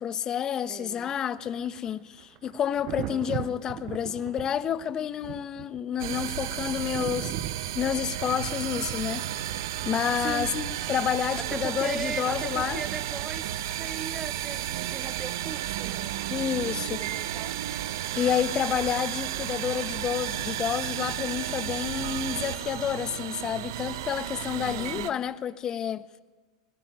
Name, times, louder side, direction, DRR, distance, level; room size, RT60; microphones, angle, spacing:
voice 1, 0.0-9.2 9.8-12.8 16.3-17.0 18.1-26.0, left 9 dB, 30° left, 1.1 m, -29 dB
voice 2, 0.7-1.2 3.1-3.3 10.2-10.6 11.4-16.2 16.6-17.6 24.6-25.0, right 6 dB, 20° right, 0.9 m, -39 dB
Thunder, 1.4-15.0 16.7-16.9, right 15 dB, 45° right, 0.7 m, -42 dB
sound 1, 6.0-25.1, right 12 dB, 65° right, 1.1 m, -33 dB
21.5 x 20.5 x 9.6 m
hypercardioid pair, 90°, 2 cm